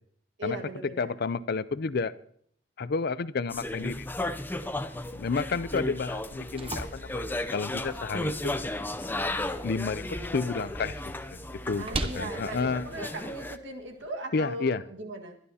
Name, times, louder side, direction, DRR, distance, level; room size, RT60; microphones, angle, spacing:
voice 1, 0.4-1.1 11.8-15.4, right 1 dB, 80° right, 3 dB, 1.8 m, -38 dB
voice 2, 1.0-2.1 2.8-4.3 5.1-8.5 9.6-11.4 11.6-11.9 12.1-13.0 14.3-14.8, left 4 dB, 60° left, 16 dB, 0.5 m, -31 dB
sound 1, 3.5-13.6, left 1 dB, 10° left, 0.5 m, -34 dB
sound 2, 6.1-14.1, right 2 dB, 30° right, 0.9 m, -42 dB
23.0 x 11.5 x 2.8 m, 0.62 s
head